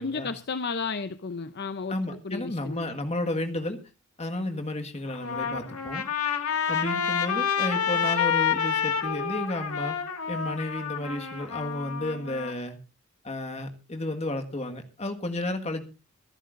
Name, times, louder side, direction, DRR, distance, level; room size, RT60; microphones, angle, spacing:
voice 1, 0.0-2.0 2.2-2.8, left 4 dB, 50° left, 11 dB, 0.7 m, -32 dB
voice 2, 1.9-3.8 4.2-6.0 6.7-10.0 10.3-12.8 13.2-15.8, left 1 dB, 30° left, 6 dB, 1.7 m, -32 dB
Trumpet, 5.1-12.5, left 7 dB, 85° left, 2.1 m, -28 dB
25.0 x 10.5 x 2.6 m, 0.32 s
head